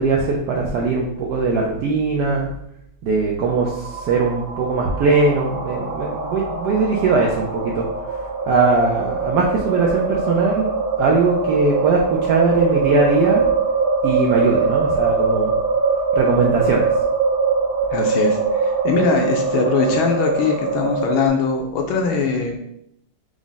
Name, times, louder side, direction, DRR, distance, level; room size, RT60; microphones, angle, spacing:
voice 1, 0.0-2.5 3.0-7.9 8.5-13.4 14.0-15.5 16.2-16.9, right 4 dB, 85° right, -1 dB, 0.9 m, -20 dB
sound 1, 3.5-21.3, right 4 dB, 65° right, 1.0 m, -22 dB
voice 2, 17.9-22.6, left 5 dB, 75° left, 2 dB, 1.3 m, -21 dB
4.7 x 2.1 x 3.9 m, 0.76 s
omnidirectional pair, 2.3 m